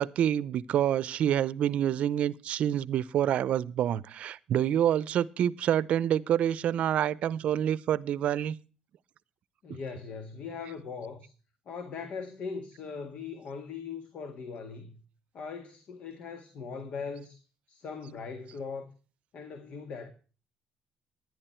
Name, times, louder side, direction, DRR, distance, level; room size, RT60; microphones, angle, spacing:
voice 1, 0.0-8.5 9.7-9.8, right 10 dB, 60° right, 0.6 m, -27 dB
voice 2, 9.6-11.3 11.6-15.0 15.3-17.4 17.7-18.9 19.3-20.1, left 5 dB, 60° left, 1.7 m, -40 dB
11.0 x 11.0 x 4.4 m
cardioid pair, 110°, 2 cm